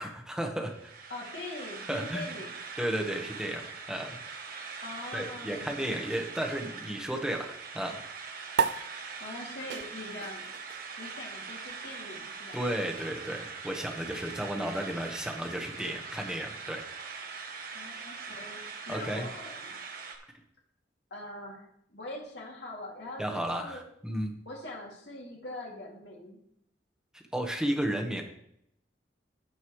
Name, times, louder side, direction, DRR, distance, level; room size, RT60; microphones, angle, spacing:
voice 1, 0.0-0.9 1.9-2.3 2.8-4.2 5.1-8.0 12.5-16.9 18.9-19.3 23.2-24.3 27.1-28.2, right 1 dB, 5° right, 2 dB, 1.3 m, -33 dB
sound 1, 0.6-20.2, right 5 dB, 55° right, 1.3 m, -42 dB
voice 2, 1.1-2.6 4.8-5.8 9.2-10.5 11.0-12.6 17.7-19.8 21.1-23.8 24.4-26.4, left 2 dB, 70° left, -3 dB, 2.6 m, -43 dB
sound 2, 8.5-15.3, right 6 dB, 75° right, 0.4 m, -37 dB
16.0 x 5.4 x 3.2 m, 0.73 s
head